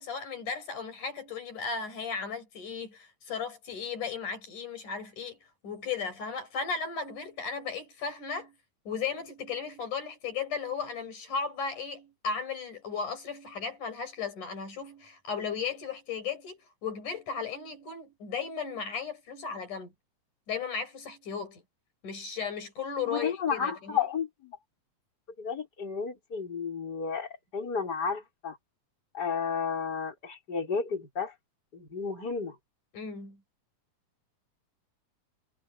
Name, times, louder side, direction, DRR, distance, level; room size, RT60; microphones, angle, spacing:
voice 1, 0.0-5.4 5.6-8.6 8.9-19.9 20.5-21.6 22.0-24.0 32.9-33.4, left 5 dB, 80° left, 6.9 m, -35 dB
voice 2, 23.1-24.6 25.4-28.6 29.1-31.3 31.7-32.6, left 6 dB, 30° left, 5.3 m, -32 dB
omnidirectional pair, 3.5 m